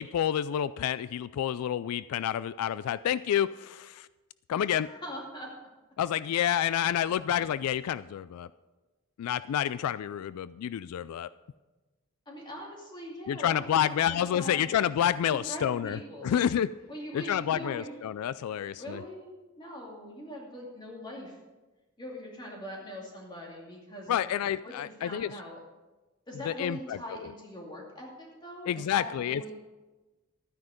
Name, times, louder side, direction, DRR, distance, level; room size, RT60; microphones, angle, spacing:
voice 1, 0.0-4.1 4.5-4.9 6.0-8.5 9.2-11.3 13.3-16.7 17.1-19.0 24.1-25.3 26.5-27.3 28.7-29.5, left 10 dB, 85° left, 16 dB, 0.3 m, -29 dB
voice 2, 4.6-5.5 12.3-14.7 15.5-16.4 16.9-17.9 18.8-21.4 22.0-24.2 24.6-25.6 26.3-29.5, equal, 20° left, -2 dB, 2.5 m, -42 dB
13.0 x 9.5 x 5.1 m, 1.2 s
head